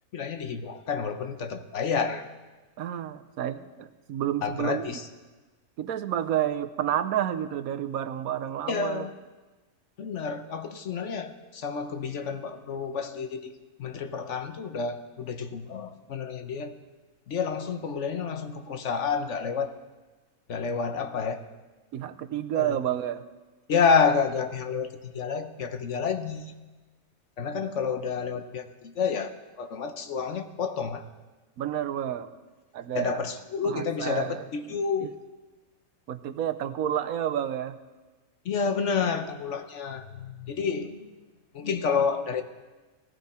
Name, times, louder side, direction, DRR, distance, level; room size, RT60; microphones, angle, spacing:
voice 1, 0.1-2.3 4.4-5.1 8.7-9.1 10.0-13.5 13.8-16.7 17.3-19.8 20.5-21.4 22.5-22.8 23.7-26.5 27.4-31.0 32.9-35.2 38.4-41.1 41.5-42.4, left 5 dB, 60° left, 8 dB, 1.1 m, -29 dB
voice 2, 2.8-4.9 5.8-9.1 21.9-23.2 31.6-32.3 32.7-33.2 33.6-35.1 36.1-37.8, right 10 dB, 80° right, 12 dB, 1.1 m, -30 dB
17.0 x 15.0 x 4.3 m, 1.3 s
omnidirectional pair, 1.5 m